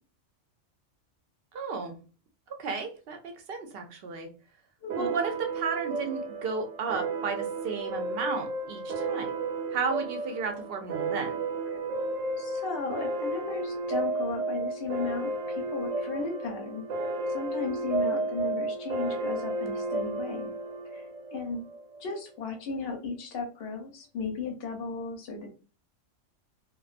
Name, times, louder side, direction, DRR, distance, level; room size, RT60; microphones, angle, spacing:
voice 1, 1.5-2.0 2.6-4.3 5.0-9.3 9.7-11.3, right 5 dB, 60° right, 5 dB, 0.7 m, -33 dB
sound 1, 4.9-22.0, right 2 dB, 85° right, 0.9 m, -33 dB
voice 2, 12.4-16.8 17.3-20.5 20.9-21.6 22.0-25.5, left 4 dB, 60° left, 4 dB, 0.8 m, -35 dB
2.4 x 2.2 x 2.4 m, 0.35 s
omnidirectional pair, 1.3 m